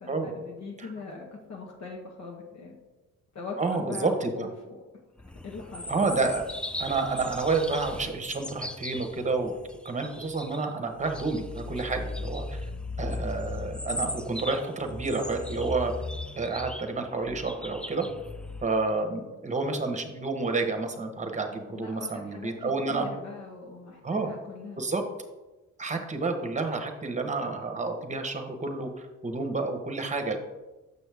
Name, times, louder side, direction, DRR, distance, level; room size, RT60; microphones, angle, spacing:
voice 1, 0.0-2.8 3.3-4.8 5.4-5.8 6.3-6.4 21.7-24.9, left 4 dB, 65° left, -1 dB, 1.2 m, -41 dB
voice 2, 3.6-4.5 5.9-6.4 6.8-9.5 9.8-12.6 13.0-15.9 16.4-18.0 18.6-23.0 24.0-24.3 24.8-25.0 25.8-30.4, right 3 dB, 25° right, 5 dB, 1.1 m, -29 dB
sound 1, 5.2-10.6 11.0-18.7, left 2 dB, 5° left, 0.4 m, -37 dB
6.8 x 6.1 x 3.5 m, 1.1 s
cardioid pair, 90°, 30 cm